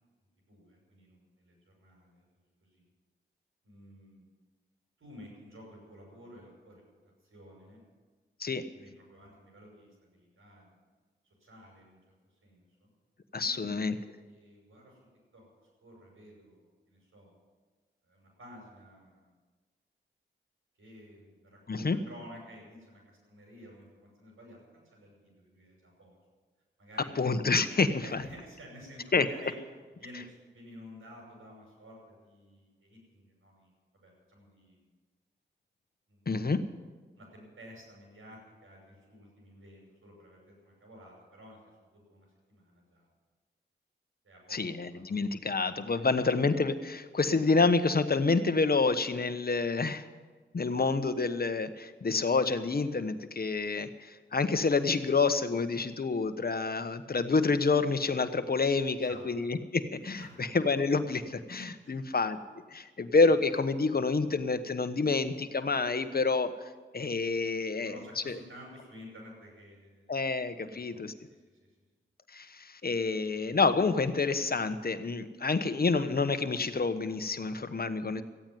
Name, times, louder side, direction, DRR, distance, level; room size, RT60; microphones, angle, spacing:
voice 1, 0.5-2.2 2.6-2.9 3.6-4.2 5.0-6.8 7.3-7.8 8.7-10.7 11.4-12.0 12.4-12.9 13.4-13.9 14.2-15.0 15.3-15.5 15.8-17.3 18.0-19.3 20.8-26.2 26.8-27.1 27.9-29.5 29.9-34.9 36.1-36.4 37.2-41.6 41.9-43.1 44.2-44.6 44.9-45.0 45.3-45.5 59.0-59.2 60.2-60.4 61.8-62.0 67.8-70.3 70.6-71.4 71.7-71.8, equal, 80° right, -1 dB, 6.1 m, -52 dB
voice 2, 13.3-14.0 21.7-22.0 27.2-28.2 29.1-29.3 36.3-36.6 44.5-50.0 50.5-62.4 62.7-66.5 66.9-67.9 68.3-68.4 70.1-71.1 72.3-78.2, left 4 dB, 50° left, 10 dB, 1.1 m, -28 dB
15.0 x 9.0 x 9.3 m, 1.4 s
cardioid pair, 45°, 21 cm